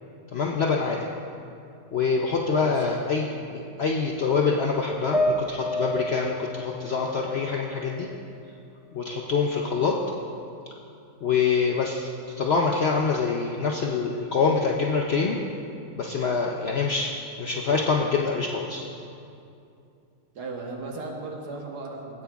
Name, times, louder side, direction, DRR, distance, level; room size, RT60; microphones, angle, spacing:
voice 1, 0.3-1.1 1.9-8.1 8.9-9.9 11.2-12.1 12.4-15.4 16.0-17.1 17.4-18.9, left 5 dB, 60° left, -1 dB, 0.7 m, -25 dB
sound 1, 5.1-8.5 8.9-10.0, equal, 25° left, 0.8 m, -31 dB
voice 2, 20.3-22.2, right 3 dB, 90° right, 0 dB, 1.6 m, -36 dB
16.5 x 8.6 x 2.3 m, 2.6 s
omnidirectional pair, 1.7 m